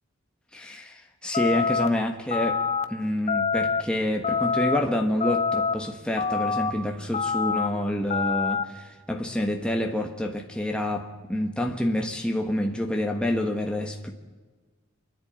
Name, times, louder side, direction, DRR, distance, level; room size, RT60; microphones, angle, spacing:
voice 1, 0.5-2.6 2.9-14.1, left 1 dB, 5° left, 1.4 m, -28 dB
sound 1, 1.3-1.9 2.3-2.8 3.3-3.8 4.2-4.8 5.2-5.7 6.2-6.7 7.1-7.7 8.1-8.6, left 5 dB, 30° left, 0.8 m, -25 dB
28.0 x 10.5 x 8.9 m
head